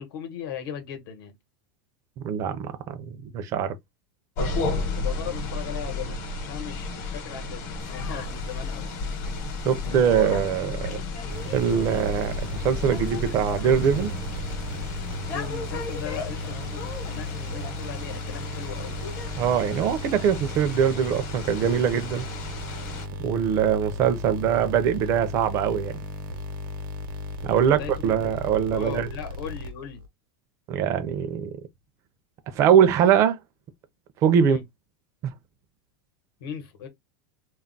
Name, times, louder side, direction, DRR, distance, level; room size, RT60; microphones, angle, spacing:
voice 1, 0.0-1.3 5.0-8.9 15.3-19.0 27.6-27.9 28.7-30.0 34.4-34.6 36.4-36.9, left 8 dB, 75° left, 0.9 m, -38 dB
voice 2, 2.2-3.8 9.6-11.0 11.5-14.1 19.4-22.3 23.2-26.0 27.4-29.1 30.7-31.5 32.5-33.4 34.2-34.6 35.2-35.3, right 8 dB, 25° right, 0.4 m, -22 dB
sound 1, 4.4-23.1, left 3 dB, 50° left, 0.9 m, -33 dB
sound 2, 7.8-19.3, left 4 dB, 30° left, 0.6 m, -40 dB
sound 3, 11.3-30.1, equal, 90° right, 0.7 m, -36 dB
2.3 x 2.0 x 3.7 m
supercardioid pair, 175°, 12 cm